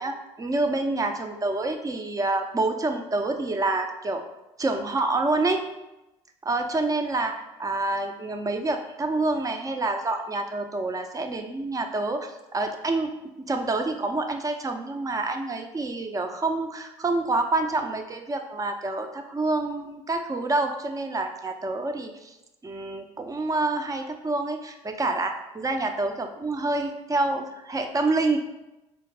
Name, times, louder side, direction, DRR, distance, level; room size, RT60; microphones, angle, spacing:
voice 1, 0.0-4.2 4.6-5.6 6.4-13.1 13.5-22.4 22.6-28.4, right 2 dB, 20° right, 5 dB, 0.5 m, -27 dB
3.9 x 2.3 x 3.4 m, 0.97 s
hypercardioid pair, 60°, 16 cm